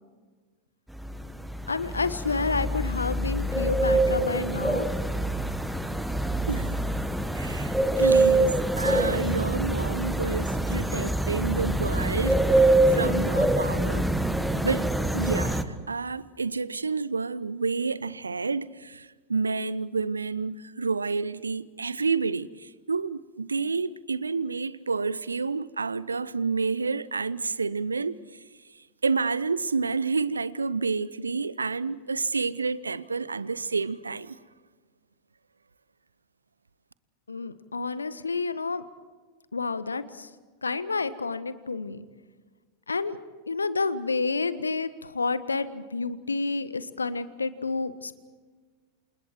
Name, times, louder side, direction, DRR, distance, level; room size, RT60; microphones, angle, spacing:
sound 1, 1.0-15.6, right 1 dB, ahead, 1.5 m, -25 dB
voice 1, 1.7-4.9 37.3-38.8 39.5-40.3 40.6-42.0 42.9-43.2 43.5-48.2, left 4 dB, 75° left, 1.3 m, -29 dB
voice 2, 6.5-6.8 7.3-14.1 14.6-28.2 29.0-34.4, right 4 dB, 75° right, 0.8 m, -29 dB
28.5 x 28.0 x 4.6 m
figure-of-eight pair, 90°, 0 cm